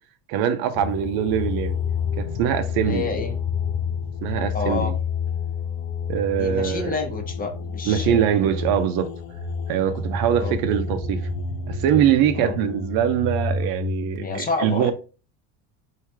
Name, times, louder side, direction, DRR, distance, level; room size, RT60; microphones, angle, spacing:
voice 1, 0.3-1.8 2.2-3.1 4.2-5.0 6.1-7.0 7.8-9.1 9.7-11.3 11.7-14.9, right 9 dB, 60° right, 0.7 m, -23 dB
sound 1, 0.7-14.2, left 5 dB, 85° left, 0.8 m, -29 dB
voice 2, 2.8-3.4 4.5-4.9 6.4-8.3 10.4-10.6 12.3-12.6 14.2-14.9, left 4 dB, 20° left, 0.8 m, -29 dB
3.2 x 2.8 x 3.4 m
supercardioid pair, 115°, 40 cm